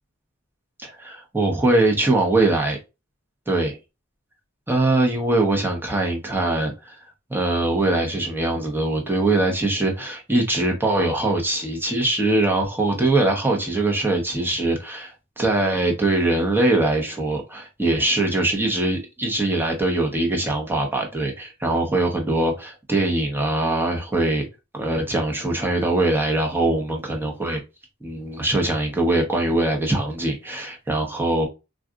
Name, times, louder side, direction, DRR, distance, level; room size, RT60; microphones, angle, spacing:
voice 1, 0.8-2.8 3.5-3.7 4.7-7.0 7.3-24.5 24.7-27.6 28.0-31.5, right 2 dB, 10° right, 0.8 m, -22 dB
3.7 x 2.3 x 2.3 m
head